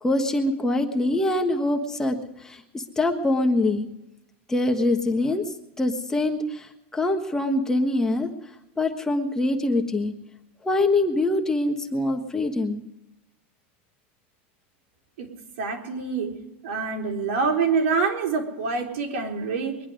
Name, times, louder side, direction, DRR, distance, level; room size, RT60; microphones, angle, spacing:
voice 1, 0.0-2.2 2.4-3.9 4.5-5.4 5.8-6.7 6.9-8.3 8.8-10.1 10.6-12.8, left 2 dB, 10° left, 3 dB, 1.3 m, -24 dB
voice 2, 15.6-16.3 16.6-19.8, right 5 dB, 80° right, 1 dB, 3.8 m, -26 dB
22.5 x 11.0 x 5.0 m, 0.93 s
supercardioid pair, 145°, 7 cm